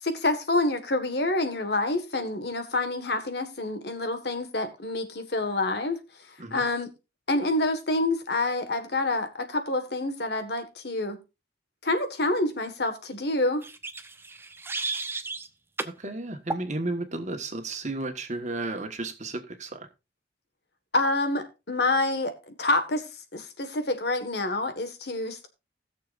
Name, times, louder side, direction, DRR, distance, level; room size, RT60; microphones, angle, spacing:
voice 1, 0.0-6.0 6.5-6.9 7.3-11.2 11.8-13.6 20.9-23.0 23.3-25.5, left 2 dB, 65° left, 1.6 m, -27 dB
sound 1, 13.6-15.5 15.8-16.0 16.5-16.7, right 3 dB, 15° right, 0.7 m, -33 dB
voice 2, 15.8-19.9, right 2 dB, 45° right, 1.4 m, -33 dB
19.5 x 6.8 x 2.5 m
head